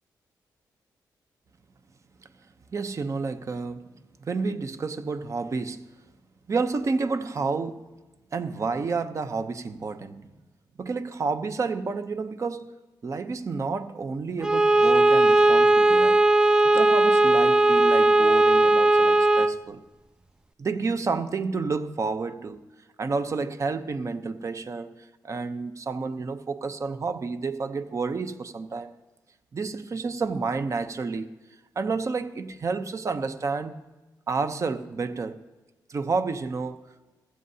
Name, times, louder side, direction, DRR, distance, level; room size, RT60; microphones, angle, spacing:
voice 1, 2.7-3.9 4.2-5.8 6.5-7.9 8.3-10.2 10.8-12.7 13.0-16.2 16.7-19.8 20.6-22.6 23.0-28.9 29.5-31.3 31.8-33.7 34.3-35.4 35.9-36.8, right 4 dB, 45° right, 0.7 m, -30 dB
Bowed string instrument, 14.4-19.6, right 2 dB, 10° right, 0.4 m, -18 dB
15.5 x 13.5 x 2.8 m
cardioid pair, 90°, 8 cm